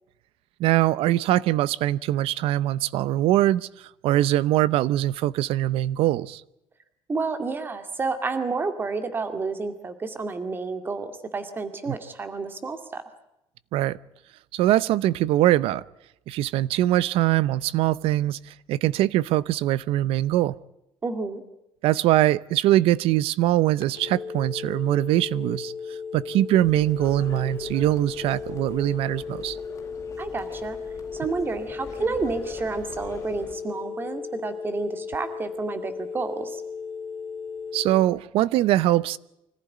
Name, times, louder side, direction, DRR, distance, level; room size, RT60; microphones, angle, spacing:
voice 1, 0.6-6.4 13.7-14.0 14.5-15.8 16.3-20.6 21.8-29.6 37.7-39.2, right 14 dB, 75° right, 0.8 m, -22 dB
voice 2, 7.1-13.0 21.0-21.4 30.2-30.8 31.1-36.6, right 4 dB, 20° right, 2.2 m, -30 dB
sound 1, 23.8-38.0, left 5 dB, 55° left, 3.6 m, -36 dB
sound 2, 26.5-33.5, left 4 dB, 30° left, 4.6 m, -44 dB
25.0 x 15.0 x 9.5 m
cardioid pair, 165°, 10 cm